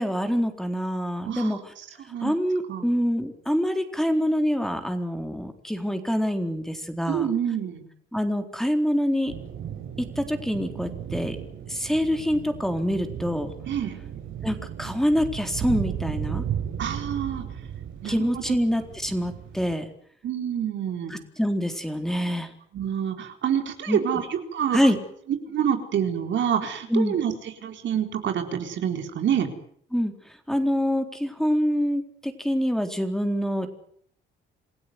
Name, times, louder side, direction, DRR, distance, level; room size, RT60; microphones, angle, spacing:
voice 1, 0.0-1.7 2.2-7.3 8.1-9.3 10.0-11.4 11.7-13.5 14.4-16.5 18.0-19.9 21.1-22.5 23.9-24.0 24.7-25.0 26.9-27.1 29.9-30.1 30.5-33.7, equal, ahead, 6 dB, 3.9 m, -25 dB
voice 2, 1.2-1.6 2.0-2.3 2.7-2.8 7.1-7.8 13.7-14.0 16.8-17.4 18.0-18.5 20.2-21.2 22.7-24.8 25.3-27.3 27.6-29.5, right 9 dB, 65° right, 5 dB, 4.1 m, -27 dB
sound 1, 9.3-19.7, right 9 dB, 90° right, 6.8 m, -35 dB
28.0 x 16.5 x 9.6 m, 0.64 s
cardioid pair, 90°, 20 cm